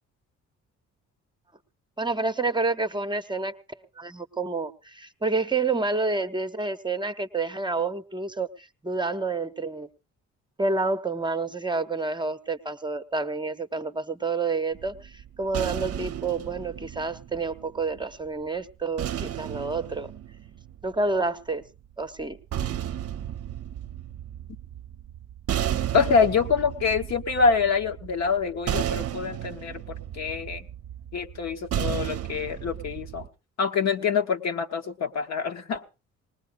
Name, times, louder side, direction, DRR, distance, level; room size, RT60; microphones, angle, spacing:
voice 1, 2.0-9.9 10.6-20.1 20.8-21.6 22.0-22.4, right 3 dB, 15° right, 9 dB, 0.8 m, -29 dB
sound 1, 14.7-18.0 19.0-21.2 22.2-33.3, right 11 dB, 55° right, 0.6 m, -33 dB
voice 2, 25.9-30.7 31.1-33.3 33.6-35.8, left 5 dB, 60° left, 4 dB, 1.2 m, -25 dB
20.0 x 19.0 x 2.5 m, 0.31 s
cardioid pair, 90°, 30 cm